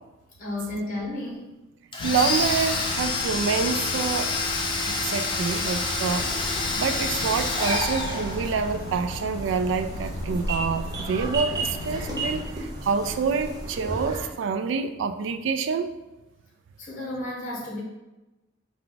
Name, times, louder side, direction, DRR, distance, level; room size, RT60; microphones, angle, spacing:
voice 1, 0.4-1.5 16.8-17.8, left 1 dB, 40° left, -2 dB, 1.0 m, -33 dB
Domestic sounds home sounds, 1.9-8.7, left 3 dB, 25° left, 0.5 m, -28 dB
sound 1, 2.0-12.5, left 2 dB, 80° left, 0.4 m, -37 dB
voice 2, 2.0-4.3 4.9-16.0, right 5 dB, 65° right, 9 dB, 0.3 m, -27 dB
sound 2, 6.1-14.3, right 2 dB, 20° right, 0.6 m, -33 dB
4.5 x 2.4 x 3.9 m, 1.0 s
head